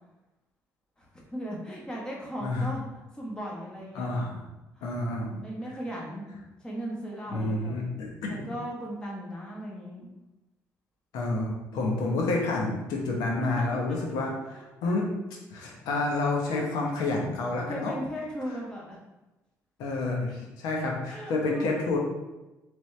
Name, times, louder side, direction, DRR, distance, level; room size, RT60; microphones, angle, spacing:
voice 1, 1.0-4.3 4.8-4.9 5.2-6.3 6.6-7.7 8.3-10.1 13.4-13.5 13.9-14.0 14.5-14.9 16.5-16.7 17.6-19.0 21.1-21.8, equal, 10° left, -3 dB, 1.2 m, -37 dB
voice 2, 3.9-4.3 4.8-5.3 7.3-8.5 11.1-15.1 15.5-18.0 19.8-22.0, left 2 dB, 85° left, -1 dB, 0.9 m, -29 dB
4.2 x 3.3 x 3.2 m, 1.0 s
cardioid pair, 110°, 6 cm